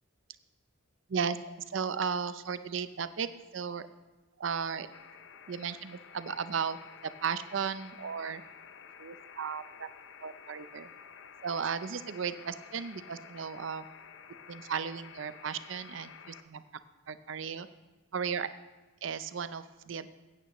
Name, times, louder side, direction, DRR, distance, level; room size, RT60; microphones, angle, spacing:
voice 1, 1.1-3.3 3.5-3.9 4.4-4.9 5.5-8.4 9.0-9.9 10.2-10.9 11.4-13.9 14.5-16.6 17.1-17.7 18.1-18.5 19.0-20.1, right 6 dB, 65° right, 13 dB, 0.5 m, -35 dB
sound 1, 4.9-16.4, left 7 dB, 65° left, 0.6 m, -51 dB
15.5 x 8.9 x 3.1 m, 1.2 s
head